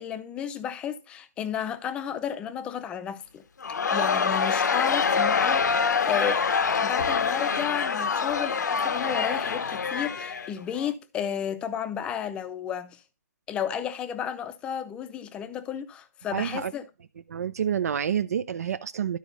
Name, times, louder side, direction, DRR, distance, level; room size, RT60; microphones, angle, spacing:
voice 1, 0.0-3.4 3.9-13.0 13.5-16.8, left 8 dB, 10° left, 0.6 m, -32 dB
Crowd, 3.6-10.9, left 5 dB, 85° left, 0.9 m, -25 dB
voice 2, 16.3-16.7 17.3-19.2, right 8 dB, 60° right, 0.6 m, -28 dB
12.0 x 4.9 x 4.1 m
hypercardioid pair, 160°, 9 cm